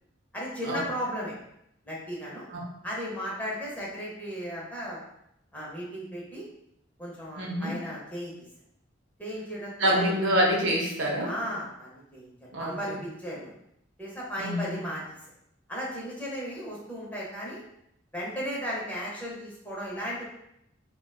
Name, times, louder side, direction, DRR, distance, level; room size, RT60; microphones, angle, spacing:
voice 1, 0.3-1.3 1.8-2.5 2.8-5.0 5.5-6.4 7.0-8.3 9.2-10.2 11.2-12.3 12.6-13.5 14.0-15.0 15.7-17.6 18.1-20.3, equal, 10° left, -6 dB, 0.8 m, -35 dB
voice 2, 7.4-7.7 9.8-11.3 12.5-12.8 14.4-14.8, equal, 70° right, -1 dB, 0.7 m, -26 dB
3.8 x 2.2 x 2.3 m, 0.77 s
head